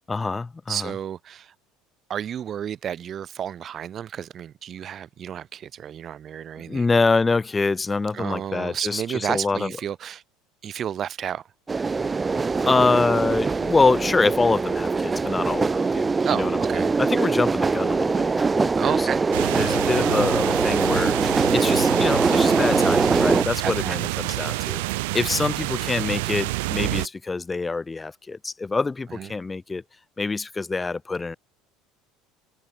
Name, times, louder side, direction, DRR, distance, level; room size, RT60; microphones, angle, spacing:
voice 1, 0.1-0.9 6.6-9.7 12.6-19.1 19.6-21.2 21.5-29.8 30.2-31.4, left 3 dB, 15° left, 3.2 m, -25 dB
voice 2, 0.7-1.5 2.1-6.8 8.1-10.2 10.6-11.5 16.2-16.9 18.8-19.3 21.3-21.5 23.6-24.2 29.1-29.3, right 9 dB, 40° right, 2.7 m, -31 dB
sound 1, 11.7-23.4, right 4 dB, 20° right, 2.5 m, -22 dB
sound 2, 19.3-27.1, right 24 dB, 85° right, 1.0 m, -28 dB
supercardioid pair, 115°, 0 cm